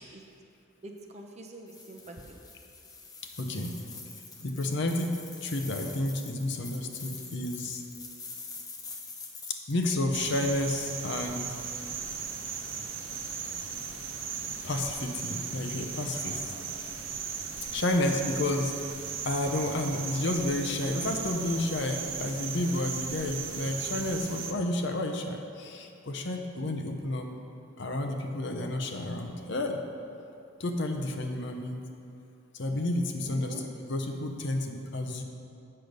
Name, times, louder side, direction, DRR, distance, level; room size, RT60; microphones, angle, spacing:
voice 1, 0.8-2.4 33.2-33.6, right 1 dB, 30° right, 2 dB, 0.6 m, -45 dB
sound 1, 1.7-9.9, left 4 dB, 15° left, 0.6 m, -45 dB
voice 2, 3.4-4.0 4.4-7.8 9.5-11.5 14.6-16.9 17.7-18.7 19.2-27.3 27.8-29.8 30.6-31.9 32.5-33.6 33.9-35.2, left 1 dB, 55° left, 4 dB, 0.7 m, -31 dB
sound 2, 10.1-24.5, right 6 dB, 65° right, 0.7 m, -37 dB
7.7 x 6.6 x 5.2 m, 2.6 s
head